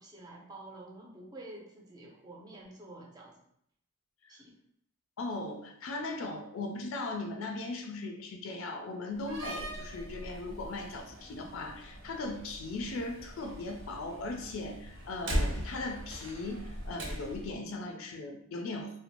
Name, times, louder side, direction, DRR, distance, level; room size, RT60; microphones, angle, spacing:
voice 1, 0.0-3.3 4.3-4.5, right 2 dB, 20° right, -3 dB, 0.5 m, -49 dB
voice 2, 5.2-19.0, left 2 dB, 70° left, 3 dB, 0.4 m, -38 dB
Slam, 9.1-17.6, equal, 65° right, 0.5 m, -39 dB
2.5 x 2.2 x 2.8 m, 0.71 s
head